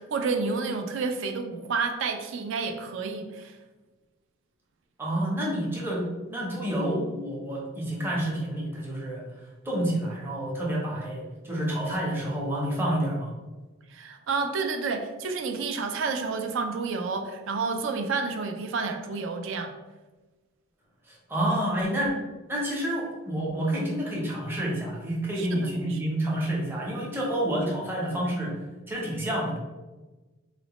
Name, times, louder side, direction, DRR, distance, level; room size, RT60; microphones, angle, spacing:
voice 1, 0.0-3.6 13.9-19.7 25.4-26.0, right 4 dB, 60° right, 6 dB, 0.3 m, -30 dB
voice 2, 5.0-9.2 9.6-13.3 21.1-22.2 22.5-28.6 28.9-29.6, right 1 dB, 10° right, -4 dB, 0.6 m, -29 dB
3.9 x 2.1 x 2.9 m, 1.2 s
head